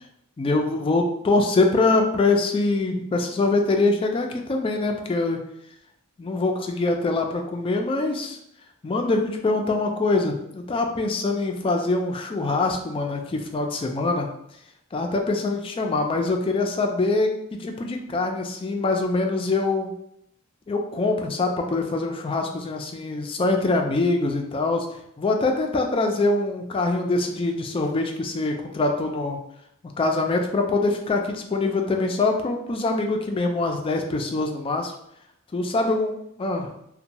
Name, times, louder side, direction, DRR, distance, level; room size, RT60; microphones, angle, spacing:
voice 1, 0.4-5.4 6.2-8.4 8.8-14.3 14.9-17.3 17.6-19.9 20.7-29.4 29.8-34.9 35.5-36.1 36.4-36.7, left 3 dB, 25° left, 3 dB, 0.3 m, -24 dB
2.9 x 2.1 x 2.6 m, 0.76 s
head